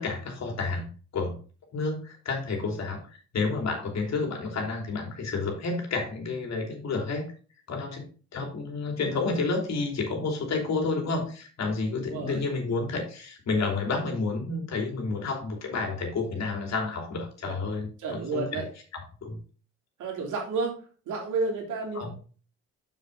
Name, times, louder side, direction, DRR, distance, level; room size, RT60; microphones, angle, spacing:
voice 1, 0.0-1.4 1.7-3.0 3.3-7.2 7.7-8.1 8.3-18.7 19.2-19.4 21.9-22.1, left 3 dB, 60° left, 2 dB, 3.2 m, -30 dB
voice 2, 12.1-12.4 17.4-17.6 18.0-18.6 20.0-20.7 21.1-22.2, right 3 dB, 80° right, 0 dB, 3.0 m, -31 dB
6.6 x 6.6 x 3.9 m, 0.38 s
cardioid pair, 90°, 30 cm